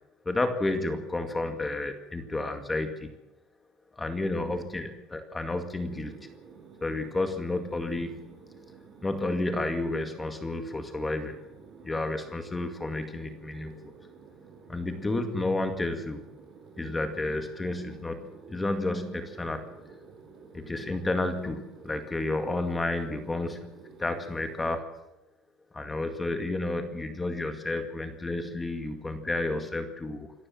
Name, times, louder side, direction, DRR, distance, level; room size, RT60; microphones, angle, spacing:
voice 1, 0.3-3.1 3.9-6.3 6.8-8.3 9.0-11.4 11.8-13.9 14.7-16.2 16.8-19.7 20.5-24.9 25.7-30.3, left 2 dB, 15° left, 7 dB, 2.2 m, -31 dB
sound 1, 5.8-24.8, right 5 dB, 45° right, 6.6 m, -51 dB
26.5 x 14.0 x 7.4 m, 0.93 s
cardioid pair, 125°, 0 cm